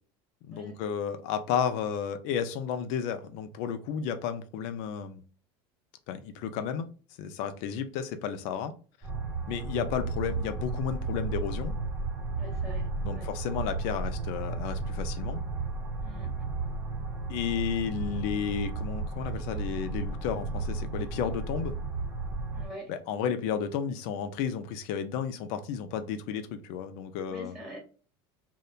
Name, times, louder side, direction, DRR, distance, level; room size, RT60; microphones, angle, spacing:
voice 1, 0.5-5.2 6.1-6.9 7.2-8.7 9.5-11.7 13.0-15.4 17.3-21.7 22.9-27.5, left 8 dB, 65° left, 0.5 m, -32 dB
sound 1, 9.0-22.7, right 3 dB, 15° right, 0.8 m, -33 dB
voice 2, 12.4-13.3 16.0-16.3 22.5-22.9 27.3-27.8, equal, ahead, 1.2 m, -45 dB
2.7 x 2.1 x 2.3 m
supercardioid pair, 135°, 13 cm